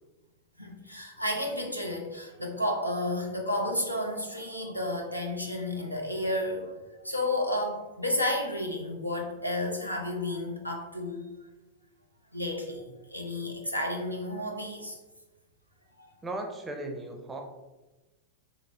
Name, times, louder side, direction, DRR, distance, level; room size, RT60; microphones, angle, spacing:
voice 1, 0.6-6.7 7.0-11.3 12.3-15.0 16.0-16.1, left 1 dB, 90° left, 1 dB, 0.7 m, -32 dB
voice 2, 16.2-17.4, right 2 dB, 15° right, 3 dB, 0.5 m, -36 dB
4.0 x 3.2 x 3.3 m, 1.1 s
figure-of-eight pair, 90°, 0 cm